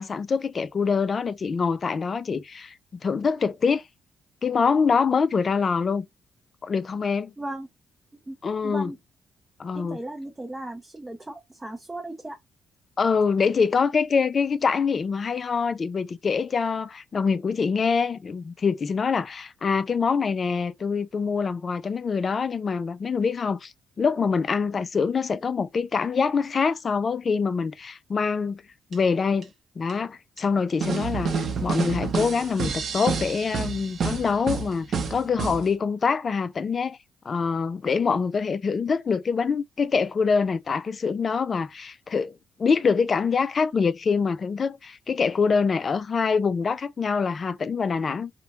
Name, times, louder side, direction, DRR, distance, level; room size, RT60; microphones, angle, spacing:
voice 1, 0.0-2.7 3.0-3.8 4.4-6.1 6.6-7.3 8.4-8.9 9.6-10.0 13.0-28.6 28.9-29.5 29.8-37.0 37.3-48.3, left 5 dB, 40° left, 0.3 m, -25 dB
voice 2, 7.4-7.7 8.3-8.4 8.6-9.0 9.7-12.4, right 1 dB, 15° right, 0.6 m, -36 dB
sound 1, 28.9-29.0 29.4-29.5 29.9-30.0 30.4-30.5 30.8-35.7, right 5 dB, 55° right, 0.6 m, -28 dB
2.5 x 2.1 x 2.9 m
cardioid pair, 90°, 0 cm